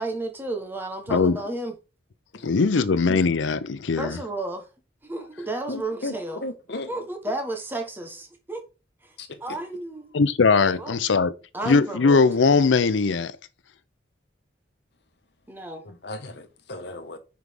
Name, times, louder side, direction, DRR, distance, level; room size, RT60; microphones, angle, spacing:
voice 1, 0.0-1.7 4.0-4.7 5.0-6.4 6.7-8.6 9.0-9.1 9.4-10.1 10.6-11.0 11.5-12.2 15.5-15.8, right 2 dB, 10° right, 1.0 m, -32 dB
voice 2, 2.4-4.2 10.1-11.3 11.6-13.4, left 4 dB, 90° left, 0.6 m, -20 dB
voice 3, 5.7-6.1 6.4-6.9 9.2-9.3 15.9-17.2, left 2 dB, 65° left, 1.0 m, -35 dB
5.9 x 4.7 x 3.5 m
head